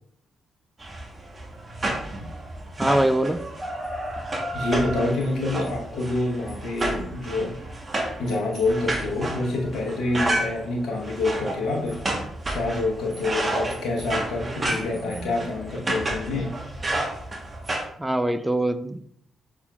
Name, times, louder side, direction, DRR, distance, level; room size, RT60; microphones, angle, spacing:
sound 1, 0.8-17.9, right 1 dB, 35° right, 1.1 m, -31 dB
voice 1, 2.8-3.4 18.0-19.0, right 1 dB, 10° right, 11 dB, 0.4 m, -23 dB
voice 2, 4.5-7.6 8.2-12.0 12.5-16.6, left 2 dB, 70° left, 0 dB, 1.0 m, -27 dB
5.7 x 3.6 x 2.4 m, 0.66 s
hypercardioid pair, 40°, 0 cm